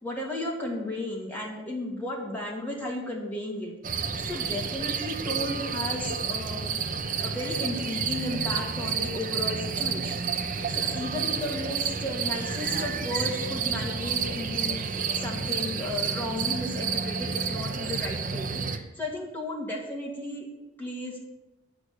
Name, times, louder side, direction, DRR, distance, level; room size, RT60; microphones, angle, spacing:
voice 1, 0.0-6.7 7.2-20.5 20.8-21.2, left 1 dB, 10° left, -3 dB, 2.3 m, -34 dB
sound 1, 3.8-18.8, right 6 dB, 40° right, 0.7 m, -30 dB
8.9 x 6.4 x 8.2 m, 1.0 s
head